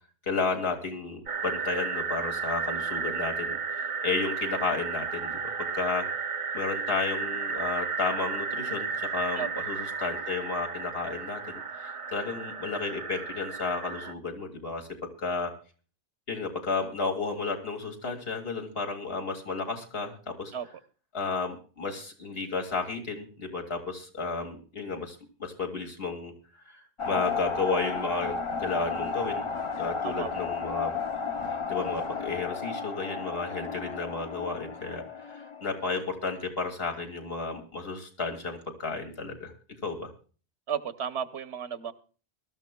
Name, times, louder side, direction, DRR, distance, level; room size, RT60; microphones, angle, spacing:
voice 1, 0.3-6.1 6.5-11.4 11.7-15.5 16.3-20.5 21.1-26.8 27.0-29.5 29.8-30.9 31.7-39.5 39.8-40.1, left 4 dB, 65° left, 3 dB, 2.4 m, -32 dB
sound 1, 1.3-14.1, right 5 dB, 40° right, 0.6 m, -33 dB
sound 2, 27.0-36.0, left 5 dB, 35° left, 0.6 m, -33 dB
voice 2, 40.7-41.9, right 8 dB, 85° right, 11 dB, 1.1 m, -33 dB
22.5 x 13.0 x 2.2 m, 0.38 s
omnidirectional pair, 1.1 m